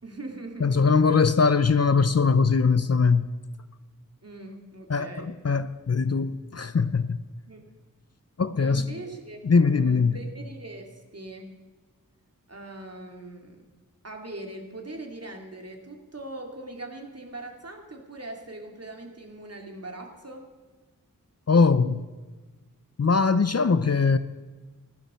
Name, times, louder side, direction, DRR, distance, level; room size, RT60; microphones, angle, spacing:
voice 1, 0.0-0.8 4.2-5.3 7.5-7.6 8.6-11.5 12.5-13.6 14.0-20.5, right 2 dB, 45° right, 2.6 m, -41 dB
voice 2, 0.6-3.3 4.9-7.2 8.4-8.9 9.4-10.2 21.5-22.0 23.0-24.2, left 5 dB, 45° left, 0.6 m, -21 dB
15.5 x 12.5 x 6.9 m
wide cardioid pair, 60°, 34 cm